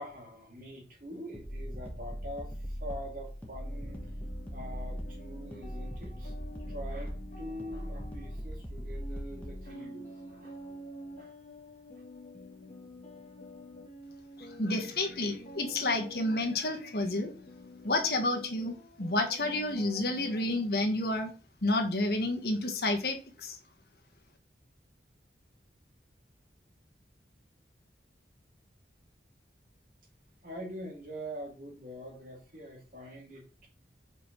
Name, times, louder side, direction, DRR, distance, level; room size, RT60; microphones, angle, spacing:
voice 1, 0.0-4.1 4.5-6.3 6.7-10.7 11.2-11.3 30.4-33.7, equal, 50° right, -1 dB, 2.8 m, -44 dB
sound 1, 1.3-9.7, equal, 10° left, 1.3 m, -40 dB
sound 2, 3.6-20.7, left 1 dB, 40° left, 1.8 m, -48 dB
voice 2, 14.6-17.3 17.8-21.3 21.6-23.6, left 2 dB, 55° left, 3 dB, 1.5 m, -30 dB
5.5 x 5.0 x 6.1 m, 0.35 s
head